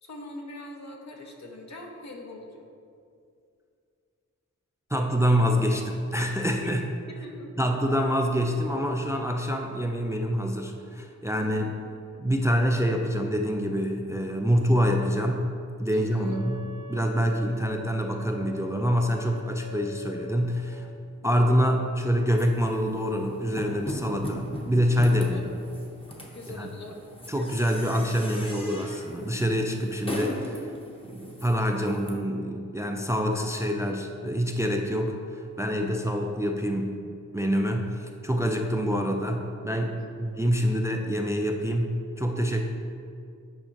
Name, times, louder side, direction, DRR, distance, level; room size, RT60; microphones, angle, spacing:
voice 1, 0.0-2.7 6.6-6.8 7.1-7.5 11.4-11.8 15.9-16.4 21.2-21.3 25.2-25.4 26.3-27.0 31.8-31.9 40.0-40.1, left 2 dB, 65° left, 1 dB, 0.9 m, -42 dB
voice 2, 4.9-6.8 7.6-11.7 12.2-15.5 15.8-20.9 21.2-25.4 26.6-26.7 27.3-30.7 31.1-37.0 37.3-42.6, equal, 10° right, 3 dB, 0.3 m, -26 dB
Wind instrument woodwind instrument, 16.2-20.7, left 1 dB, 65° right, 0.5 m, -44 dB
sound 1, 22.3-32.1, left 1 dB, 20° left, 0.8 m, -39 dB
8.9 x 5.3 x 2.8 m, 2.4 s
wide cardioid pair, 120°, 30 cm